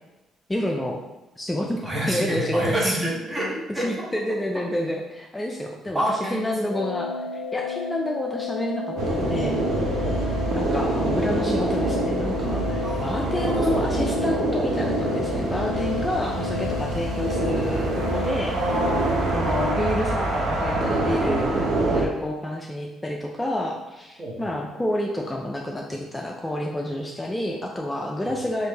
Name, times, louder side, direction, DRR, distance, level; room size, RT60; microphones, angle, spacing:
voice 1, 0.5-1.0 1.4-2.9 3.7-7.1 7.5-9.5 10.5-18.6 19.3-28.7, left 1 dB, 15° left, 0 dB, 0.3 m, -29 dB
voice 2, 1.8-4.1 5.9-6.5 10.0-10.2 12.8-13.8 18.5-19.8 24.2-24.5, right 1 dB, 30° right, -3 dB, 1.0 m, -28 dB
sound 1, 6.7-20.1, left 4 dB, 85° left, 0.4 m, -32 dB
sound 2, 9.0-22.1, right 2 dB, 70° right, 0.6 m, -25 dB
3.1 x 2.6 x 3.4 m, 1.0 s
cardioid pair, 85°, 0 cm